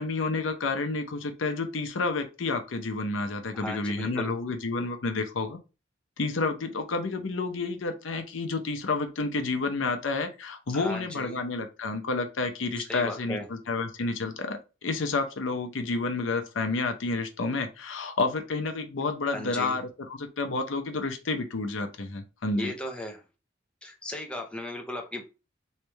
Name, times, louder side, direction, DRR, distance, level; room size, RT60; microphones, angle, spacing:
voice 1, 0.0-5.6 6.2-22.7, left 3 dB, 90° left, 6 dB, 0.7 m, -30 dB
voice 2, 3.5-4.3 10.7-11.4 12.8-13.4 19.2-19.8 22.6-23.2 23.8-25.2, left 1 dB, 5° left, 2 dB, 0.7 m, -36 dB
3.2 x 3.2 x 3.3 m, 0.30 s
head